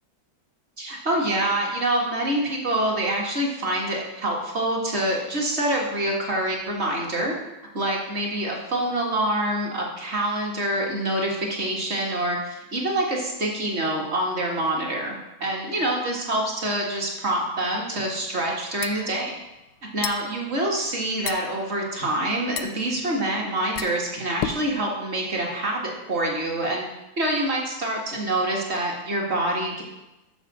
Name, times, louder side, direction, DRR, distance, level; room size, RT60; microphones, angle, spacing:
voice 1, 0.8-7.4 7.7-19.3 19.9-26.8 27.2-29.8, right 1 dB, 35° right, -1 dB, 1.8 m, -26 dB
sound 1, 18.4-24.8, left 9 dB, 75° left, 1.1 m, -35 dB
6.7 x 6.7 x 6.1 m, 0.99 s
omnidirectional pair, 2.3 m